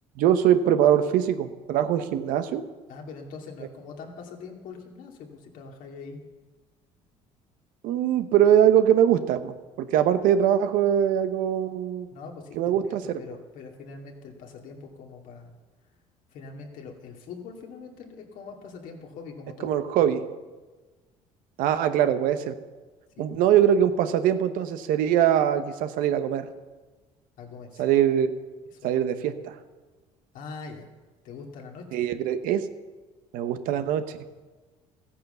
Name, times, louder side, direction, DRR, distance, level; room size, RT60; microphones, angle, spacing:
voice 1, 0.2-2.6 7.8-12.1 12.6-13.0 19.6-20.2 21.6-22.5 23.2-26.5 27.8-28.3 28.8-29.5 31.9-32.7 33.3-34.2, right 10 dB, 80° right, 10 dB, 1.0 m, -22 dB
voice 2, 2.9-6.2 12.1-15.5 16.3-19.7 20.0-20.2 23.2-23.4 27.4-27.9 28.7-29.4 30.3-30.9 31.2-32.0, left 4 dB, 70° left, 1 dB, 2.5 m, -43 dB
14.5 x 9.9 x 6.8 m, 1.3 s
cardioid pair, 95°, 14 cm